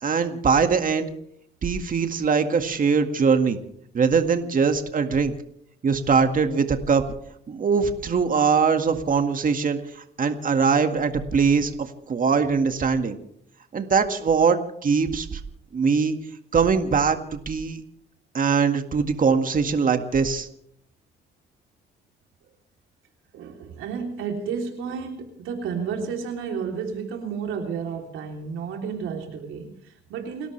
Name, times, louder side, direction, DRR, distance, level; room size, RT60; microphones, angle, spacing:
voice 1, 0.0-1.1 1.6-3.6 3.9-5.3 5.8-7.0 7.5-9.8 10.2-13.2 13.7-15.4 15.7-16.2 16.5-17.8 18.3-20.5, right 5 dB, 45° right, 6 dB, 1.9 m, -22 dB
voice 2, 23.3-30.5, right 6 dB, 90° right, 2 dB, 3.3 m, -32 dB
30.0 x 13.5 x 3.3 m, 0.71 s
cardioid pair, 90°, 20 cm